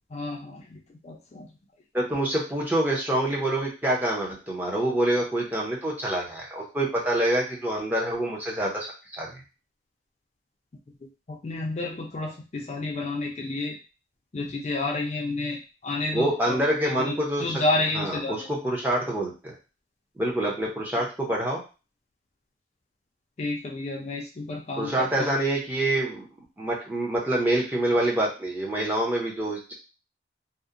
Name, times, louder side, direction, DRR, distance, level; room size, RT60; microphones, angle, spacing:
voice 1, 0.1-1.5 11.3-13.7 14.3-15.6 15.8-18.5 23.4-25.3, left 2 dB, 35° left, 0 dB, 0.4 m, -30 dB
voice 2, 1.9-9.3 16.1-17.6 17.9-19.5 20.2-21.6 24.8-26.3 26.6-29.7, right 1 dB, 10° right, -3 dB, 0.6 m, -26 dB
2.7 x 2.0 x 2.4 m, 0.32 s
head